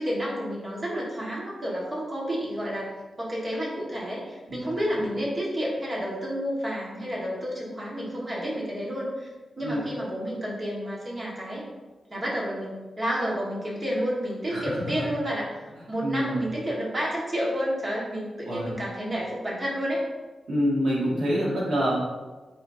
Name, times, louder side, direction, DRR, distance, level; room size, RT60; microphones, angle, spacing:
voice 1, 0.0-2.9 3.2-9.3 9.6-11.6 12.1-15.6 15.9-20.0, equal, 30° right, -5 dB, 1.8 m, -30 dB
voice 2, 14.5-15.0 16.0-16.4 18.4-18.7 20.5-21.9, equal, 85° right, -8 dB, 1.9 m, -26 dB
8.3 x 4.3 x 2.8 m, 1.2 s
wide cardioid pair, 155°, 0 cm